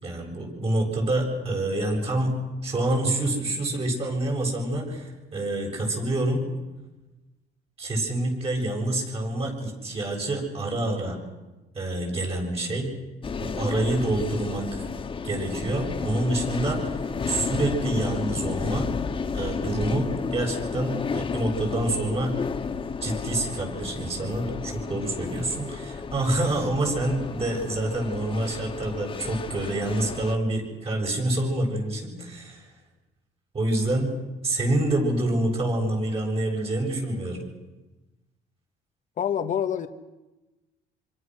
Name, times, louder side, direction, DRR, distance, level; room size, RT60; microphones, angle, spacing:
voice 1, 0.0-2.3 2.6-6.4 7.8-11.2 11.7-12.9 13.4-14.9 15.2-18.9 19.3-22.3 23.0-32.7 33.5-34.1 34.4-37.4, right 1 dB, 35° right, 0 dB, 7.9 m, -27 dB
sound 1, 13.2-30.4, left 5 dB, 30° left, 1.5 m, -32 dB
voice 2, 39.2-39.9, left 9 dB, 50° left, 8 dB, 1.4 m, -26 dB
26.5 x 25.5 x 6.5 m, 1.1 s
cardioid pair, 110°, 17 cm